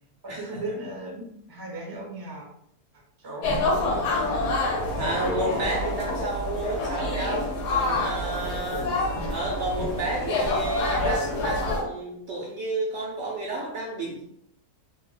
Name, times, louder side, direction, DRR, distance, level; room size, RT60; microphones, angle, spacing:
voice 1, 0.2-2.5 3.2-4.3 8.3-9.0, right 2 dB, 35° right, -3 dB, 0.3 m, -37 dB
sound 1, 3.4-11.8, left 2 dB, 90° left, 1.2 m, -27 dB
voice 2, 5.0-8.9 9.3-14.2, right 2 dB, 70° right, -2 dB, 0.7 m, -31 dB
2.7 x 2.2 x 3.1 m, 0.73 s
omnidirectional pair, 1.7 m